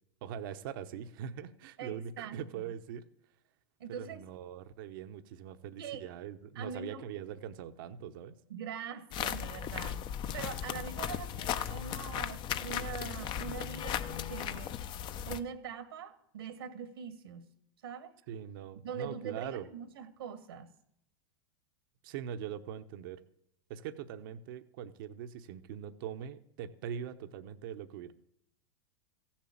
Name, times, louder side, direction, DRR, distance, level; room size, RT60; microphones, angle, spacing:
voice 1, 0.2-3.0 4.0-8.3 18.3-19.7 22.0-23.2 23.7-28.1, right 9 dB, 65° right, 9 dB, 0.9 m, -42 dB
voice 2, 1.8-2.6 3.8-4.2 5.8-6.0 6.5-7.1 8.5-10.0 10.3-14.8 15.2-17.5 17.8-18.1 18.8-20.7, right 7 dB, 85° right, 10 dB, 1.7 m, -43 dB
sound 1, 9.1-15.4, left 10 dB, 40° left, 0.8 m, -36 dB
15.0 x 7.4 x 8.6 m, 0.75 s
hypercardioid pair, 105°, 12 cm